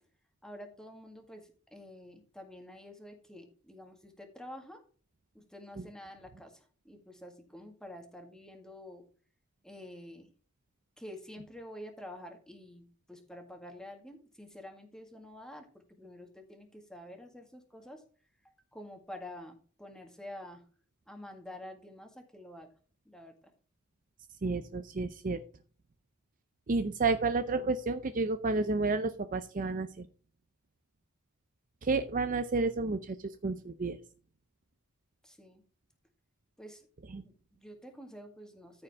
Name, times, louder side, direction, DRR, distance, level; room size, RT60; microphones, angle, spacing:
voice 1, 0.4-4.8 5.3-9.0 9.6-10.3 11.0-18.0 18.4-20.7 21.1-22.7 23.1-23.5 35.2-35.6 36.6-36.9 37.2-38.8, left 1 dB, 5° left, 4 dB, 1.8 m, -48 dB
voice 2, 24.4-25.4 26.7-30.1 31.8-34.0 37.1-37.2, right 3 dB, 40° right, 10 dB, 0.5 m, -31 dB
14.0 x 4.9 x 3.5 m, 0.41 s
head